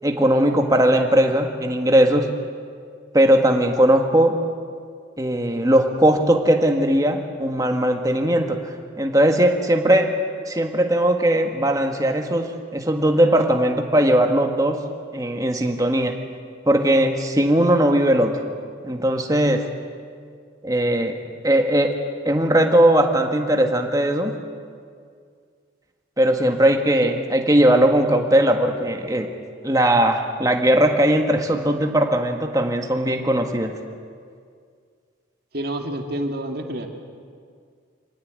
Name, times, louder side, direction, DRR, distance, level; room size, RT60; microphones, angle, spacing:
voice 1, 0.0-2.3 3.1-4.4 5.2-10.1 10.5-14.8 15.1-16.2 16.6-18.4 18.8-19.7 20.6-21.9 22.2-24.4 26.2-29.3 29.6-33.7, right 1 dB, 20° right, 4 dB, 1.7 m, -19 dB
voice 2, 35.5-36.9, right 1 dB, 50° right, 3 dB, 2.3 m, -28 dB
25.0 x 17.0 x 9.6 m, 2.1 s
head